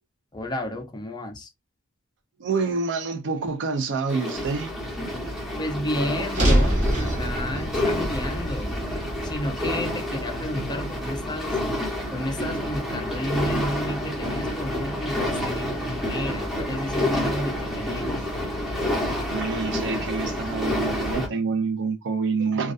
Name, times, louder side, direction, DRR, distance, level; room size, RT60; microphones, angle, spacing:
voice 1, 0.3-1.5 5.6-8.8 9.2-11.6 12.1-18.2, left 1 dB, 20° left, 0.4 m, -32 dB
voice 2, 2.4-4.7 19.3-22.7, right 4 dB, 55° right, 0.4 m, -27 dB
sound 1, 4.1-21.3, left 1 dB, ahead, 0.8 m, -29 dB
sound 2, 6.3-10.6, equal, 35° right, 0.9 m, -25 dB
2.3 x 2.2 x 2.4 m
head